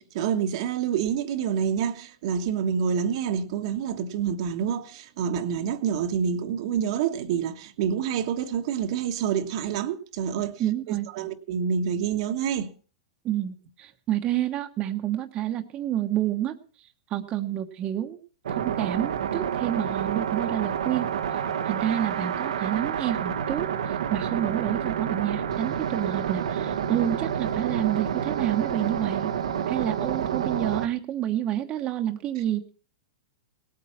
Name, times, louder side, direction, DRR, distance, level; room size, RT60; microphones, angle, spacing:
voice 1, 0.0-10.6 10.9-12.7, right 7 dB, 60° right, 1.3 m, -27 dB
voice 2, 10.6-11.1 13.2-16.6 17.1-18.2 18.5-21.4 21.6-29.3 29.7-32.7, right 12 dB, 30° right, 1.1 m, -29 dB
sound 1, 18.4-30.9, right 8 dB, 85° right, 1.1 m, -29 dB
17.5 x 8.6 x 5.9 m
hypercardioid pair, 125°, 3 cm